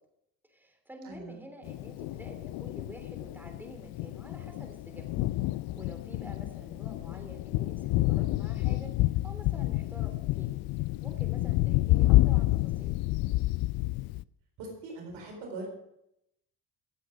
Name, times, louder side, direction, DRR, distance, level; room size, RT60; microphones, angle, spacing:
voice 1, 0.5-5.0 5.7-8.9 9.2-10.5 11.0-12.9, right 1 dB, 5° right, 4 dB, 3.3 m, -48 dB
voice 2, 1.0-1.4 14.6-15.7, right 2 dB, 85° right, 1 dB, 4.3 m, -41 dB
Thunder, 1.6-14.2, left 18 dB, 65° left, 0.5 m, -29 dB
16.5 x 7.8 x 5.0 m, 0.82 s
supercardioid pair, 70°, 39 cm